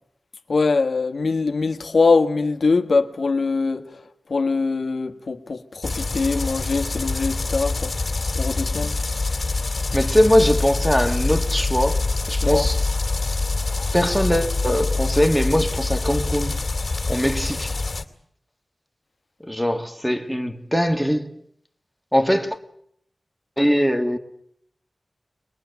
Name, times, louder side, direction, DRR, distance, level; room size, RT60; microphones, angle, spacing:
voice 1, 0.5-3.8 4.3-7.9 8.3-8.9 12.4-12.7, left 4 dB, 80° left, 1.5 m, -22 dB
sound 1, 5.8-18.0, left 3 dB, 50° left, 2.5 m, -25 dB
voice 2, 9.9-12.8 13.9-16.6 17.1-17.8 19.4-21.4 22.1-22.6 23.6-24.2, equal, ahead, 1.8 m, -21 dB
22.5 x 22.0 x 8.1 m
wide cardioid pair, 85°, 0 cm